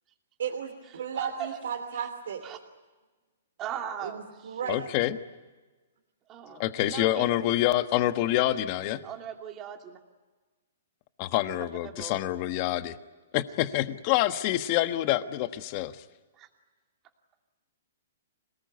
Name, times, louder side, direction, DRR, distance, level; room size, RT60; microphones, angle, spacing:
voice 1, 0.4-2.4 4.0-4.9, right 7 dB, 70° right, 3 dB, 3.1 m, -34 dB
voice 2, 1.1-1.5 2.4-2.6 3.6-4.6 6.3-7.3 9.0-10.0 11.8-12.2 16.3-16.5, right 9 dB, 20° right, 4 dB, 2.6 m, -39 dB
voice 3, 4.7-5.2 6.6-9.0 11.2-13.0 13.3-15.9, left 14 dB, 35° left, 11 dB, 1.2 m, -27 dB
26.5 x 19.0 x 9.5 m, 1.3 s
hypercardioid pair, 160°, 0 cm